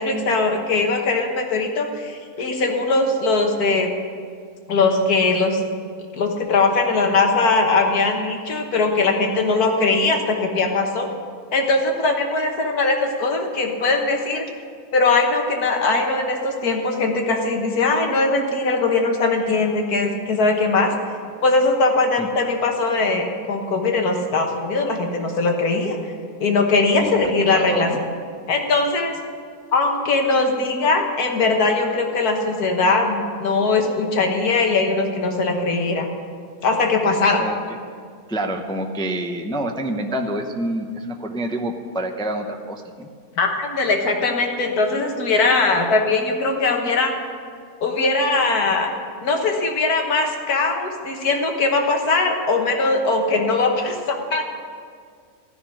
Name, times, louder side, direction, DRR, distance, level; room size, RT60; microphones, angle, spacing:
voice 1, 0.0-3.9 4.7-5.6 6.1-11.1 11.5-14.4 14.9-20.9 21.4-26.0 26.4-27.9 28.5-29.2 29.7-36.1 36.6-37.4 43.4-47.1 47.8-48.9 49.2-54.4, left 3 dB, 85° left, 3 dB, 1.9 m, -20 dB
voice 2, 27.0-28.0 37.4-37.6 38.3-43.1, right 1 dB, 5° left, 4 dB, 0.4 m, -27 dB
14.0 x 6.2 x 9.9 m, 2.1 s
omnidirectional pair, 1.6 m